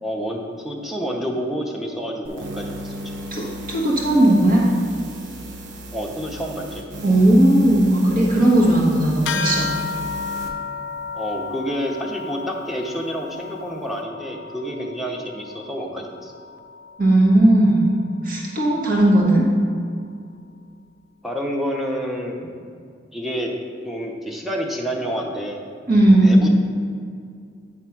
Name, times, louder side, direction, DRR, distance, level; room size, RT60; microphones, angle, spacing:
voice 1, 0.0-2.9 5.9-6.8 11.1-16.3 21.2-22.4 23.1-23.5 23.8-25.6 26.1-26.5, equal, ahead, 0 dB, 0.8 m, -28 dB
sound 1, 2.2-10.5, equal, 85° right, 0.9 m, -35 dB
voice 2, 3.3-4.6 7.0-9.7 17.0-17.9 18.2-19.4 25.9-26.3, right 1 dB, 50° right, -4 dB, 1.4 m, -16 dB
sound 2, 9.3-19.1, left 5 dB, 75° left, 0.5 m, -33 dB
9.1 x 3.6 x 5.8 m, 2.3 s
head